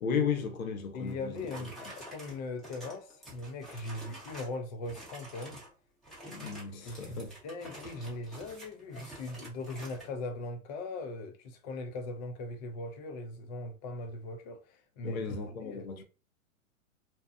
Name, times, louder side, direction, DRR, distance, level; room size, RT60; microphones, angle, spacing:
voice 1, 0.0-1.3 6.3-7.3 15.0-16.0, left 6 dB, 80° left, 0.9 m, -34 dB
voice 2, 0.9-5.6 6.8-15.2 15.6-15.9, left 2 dB, 30° left, 0.4 m, -40 dB
sound 1, 1.1-4.6 4.8-5.7 6.0-10.1, right 1 dB, ahead, 0.8 m, -48 dB
2.7 x 2.2 x 2.4 m
hypercardioid pair, 130°, 41 cm